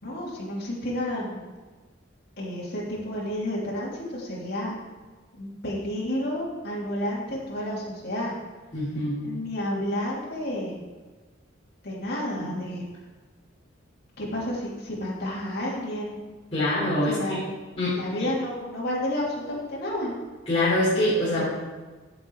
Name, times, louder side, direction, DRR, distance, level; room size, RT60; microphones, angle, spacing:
voice 1, 0.0-1.4 2.4-4.8 5.4-8.3 9.2-10.8 11.8-12.8 14.2-16.2 17.1-17.4 17.9-20.1 21.4-21.5, left 1 dB, 55° left, -6 dB, 3.3 m, -31 dB
voice 2, 8.7-9.2 12.4-12.5 16.5-17.4 17.8-18.0 20.5-21.4, left 1 dB, 30° left, -10 dB, 3.5 m, -24 dB
15.0 x 7.0 x 4.9 m, 1.3 s
head